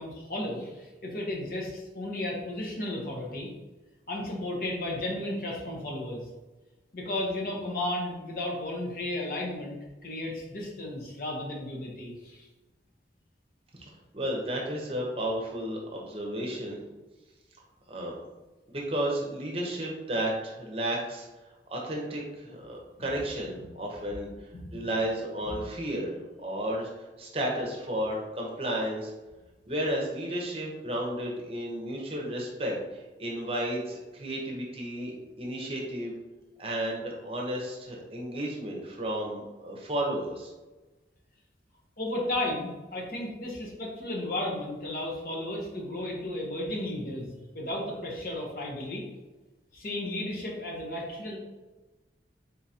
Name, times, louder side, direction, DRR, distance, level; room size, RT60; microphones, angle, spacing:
voice 1, 0.0-3.5 4.1-6.3 6.9-9.8 10.0-12.5 23.5-23.7 24.5-24.8 25.5-25.6 42.0-47.3 47.5-49.0 49.7-51.4, left 1 dB, 50° left, -2 dB, 0.9 m, -34 dB
voice 2, 13.8-16.8 17.9-18.2 18.7-21.3 21.7-26.1 26.4-29.1 29.6-36.1 36.6-40.5, right 1 dB, 30° right, -1 dB, 0.7 m, -33 dB
3.9 x 3.7 x 2.8 m, 1.1 s
head